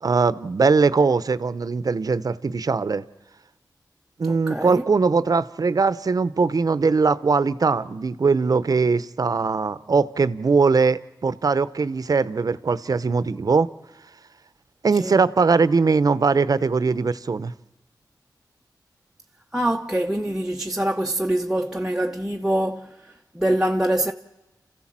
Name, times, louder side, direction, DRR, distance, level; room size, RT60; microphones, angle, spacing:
voice 1, 0.0-3.0 4.2-13.7 14.8-17.5, right 4 dB, 60° right, 0.7 m, -21 dB
voice 2, 4.3-4.8 14.9-15.1 19.5-24.1, right 1 dB, 10° right, 0.8 m, -24 dB
29.0 x 15.0 x 7.4 m
wide cardioid pair, 80°, 7 cm